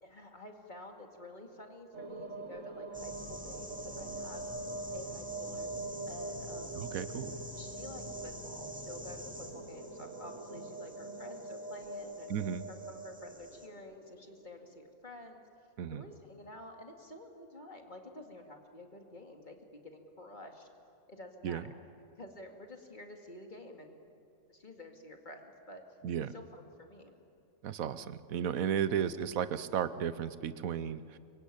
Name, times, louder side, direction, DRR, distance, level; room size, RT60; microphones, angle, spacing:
voice 1, 0.0-4.5 4.9-5.7 6.1-6.9 7.5-12.3 12.7-15.4 15.9-20.7 21.1-21.7 22.2-24.0 24.5-25.8 26.3-27.1 28.8-29.1, left 1 dB, 35° left, 3 dB, 2.4 m, -50 dB
sound 1, 1.9-14.4, right 3 dB, 70° right, 2.0 m, -43 dB
sound 2, 2.9-13.7, left 1 dB, 5° right, 2.8 m, -48 dB
voice 2, 6.7-7.4 12.3-12.6 15.8-16.0 21.4-21.6 26.0-26.3 27.6-31.2, right 8 dB, 90° right, 14 dB, 1.3 m, -34 dB
25.5 x 23.0 x 8.6 m, 2.5 s
omnidirectional pair, 1.4 m